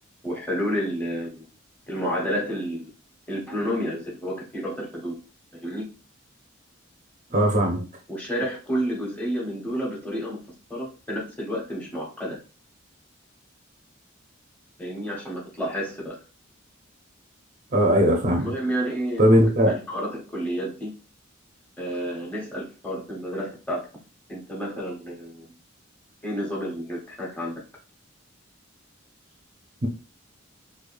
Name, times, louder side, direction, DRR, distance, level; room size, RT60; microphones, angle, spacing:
voice 1, 0.2-1.4 1.9-2.9 3.3-5.1 5.6-5.9 7.7-7.8 8.1-10.4 10.7-12.4 14.8-16.2 18.4-20.9 21.8-23.9 24.3-25.5 26.2-27.5, equal, 10° left, -3 dB, 1.0 m, -30 dB
voice 2, 7.3-7.8 17.7-18.4 19.2-19.7, equal, 35° right, 1 dB, 0.6 m, -18 dB
4.8 x 2.2 x 2.5 m, 0.33 s
head